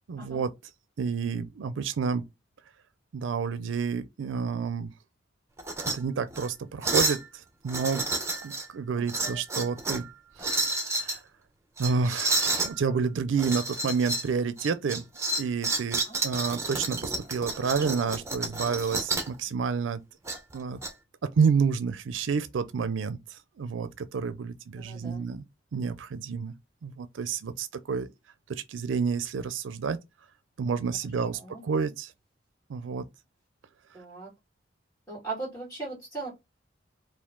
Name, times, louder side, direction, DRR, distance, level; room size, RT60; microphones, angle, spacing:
voice 1, 0.1-0.5 1.0-2.2 3.1-4.9 5.9-8.0 8.4-10.1 10.4-11.2 11.8-15.0 15.4-20.0 20.5-20.8 21.2-25.4 25.7-26.5 26.8-28.1 28.5-30.0 30.6-32.1 32.7-33.0, right 5 dB, 85° right, 0.4 m, -29 dB
sound 1, 5.6-6.0 6.3-6.5 6.8-7.2 7.7-8.7 9.1-10.1 10.4-11.2 11.8-12.7 13.4-14.3 14.6-19.3 20.3-20.9, right 2 dB, 15° right, 0.7 m, -30 dB
voice 2, 8.9-9.7 16.1-16.2 24.8-25.2 31.2-31.6 33.9-34.3 35.1-36.3, right 3 dB, 15° left, 2.1 m, -39 dB
4.5 x 2.5 x 3.6 m
head